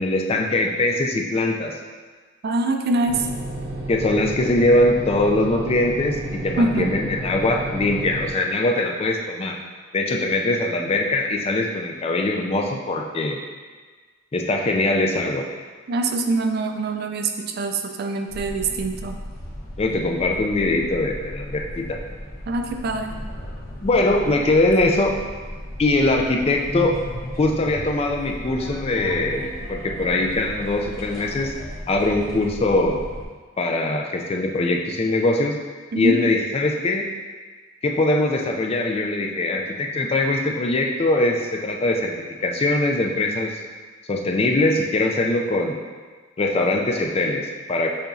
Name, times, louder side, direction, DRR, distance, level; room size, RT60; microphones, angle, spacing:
voice 1, 0.0-1.7 3.9-9.6 9.9-13.4 14.3-15.4 19.8-22.0 23.8-25.2 25.8-27.0 27.4-31.5 31.9-33.0 33.6-35.6 35.9-37.1 37.8-42.1 42.4-43.6 44.1-45.8 46.4-47.9, left 2 dB, 30° left, 1 dB, 0.3 m, -22 dB
voice 2, 2.4-3.3 6.6-6.9 15.9-19.2 22.5-23.2 35.9-36.2, right 2 dB, 50° right, 5 dB, 0.3 m, -24 dB
sound 1, 3.1-8.3, right 1 dB, 90° right, 1.3 m, -31 dB
sound 2, 18.3-33.2, equal, 45° left, 1.0 m, -35 dB
6.8 x 3.0 x 2.6 m, 1.4 s
head